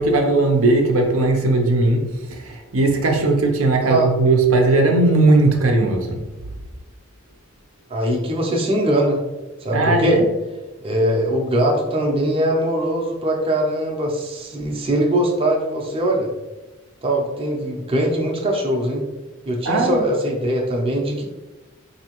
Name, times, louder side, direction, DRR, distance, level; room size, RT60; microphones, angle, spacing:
voice 1, 0.0-6.2 9.7-10.2 19.6-20.0, right 2 dB, 90° right, 0.6 m, -18 dB
voice 2, 7.9-9.2 9.6-10.2 10.8-16.3 17.0-19.0 19.5-21.2, right 1 dB, 25° right, 0.5 m, -21 dB
4.2 x 2.7 x 2.9 m
head